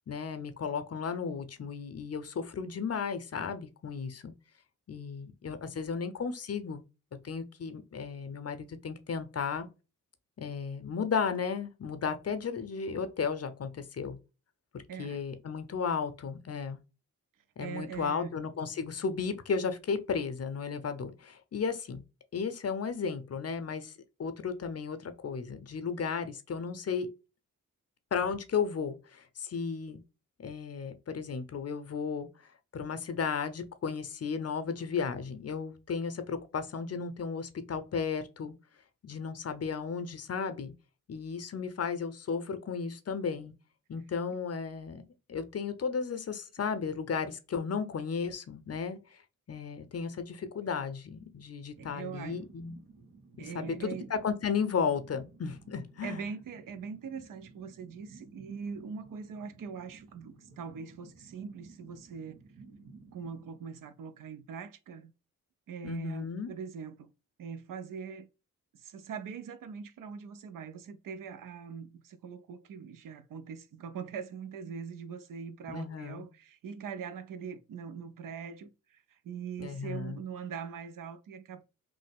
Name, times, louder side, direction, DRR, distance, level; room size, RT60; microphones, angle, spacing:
voice 1, 0.1-4.3 4.9-6.8 7.2-9.7 10.4-14.2 15.0-16.8 17.6-22.0 22.3-23.9 24.2-27.1 28.1-30.0 30.4-32.3 32.7-38.5 39.0-40.7 41.1-43.5 43.9-45.0 45.3-49.0 49.5-52.8 53.5-56.2 65.8-66.5 75.7-76.3 79.6-80.2, left 6 dB, 45° left, 0.6 m, -34 dB
voice 2, 14.9-15.2 17.6-18.4 51.8-52.4 53.4-54.2 56.0-62.4 63.1-65.1 65.7-67.1 67.4-68.3 68.7-81.6, right 6 dB, 70° right, 0.5 m, -42 dB
sound 1, 51.8-64.4, right 3 dB, 85° right, 1.0 m, -55 dB
3.2 x 2.0 x 3.4 m
supercardioid pair, 45°, 34 cm